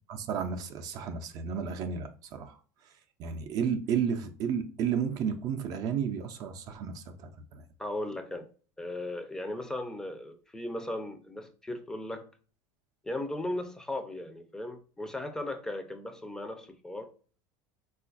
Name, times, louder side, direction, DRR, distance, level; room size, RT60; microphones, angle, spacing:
voice 1, 0.1-2.6 3.2-7.6, right 7 dB, 45° right, 0.5 m, -32 dB
voice 2, 7.8-8.5 8.8-12.3 13.0-17.1, left 1 dB, 5° left, 0.4 m, -37 dB
3.7 x 2.4 x 2.4 m
supercardioid pair, 135°, 9 cm